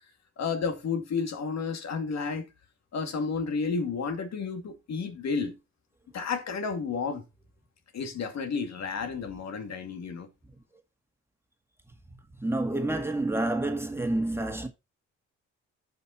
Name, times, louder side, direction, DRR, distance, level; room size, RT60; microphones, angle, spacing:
voice 1, 0.4-2.4 2.9-5.6 6.1-7.2 7.9-10.3, left 5 dB, 60° left, 2.4 m, -31 dB
voice 2, 12.4-14.7, right 2 dB, 10° right, 2.0 m, -29 dB
11.0 x 5.5 x 4.3 m
cardioid pair, 90°, 30 cm